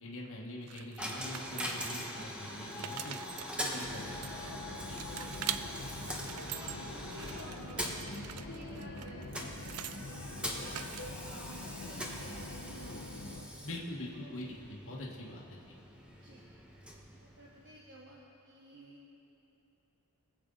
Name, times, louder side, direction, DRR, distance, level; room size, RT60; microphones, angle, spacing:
voice 1, 0.0-3.2 3.6-5.0 13.6-15.6, left 1 dB, 60° left, -3 dB, 1.5 m, -44 dB
sound 1, 0.7-2.2 2.6-4.6 5.0-5.6 6.1-6.8 7.1-10.0 10.7-11.3, right 11 dB, 90° right, 0.5 m, -43 dB
Coin (dropping), 1.0-17.9, equal, 5° right, 1.2 m, -43 dB
sound 2, 3.8-13.5, left 2 dB, 80° left, 1.2 m, -44 dB
voice 2, 5.2-5.6 6.3-10.9 11.2-12.9 14.1-14.4 16.1-16.4 17.2-19.0, right 1 dB, 55° right, -4 dB, 1.3 m, -54 dB
23.0 x 7.9 x 4.0 m, 2.9 s
head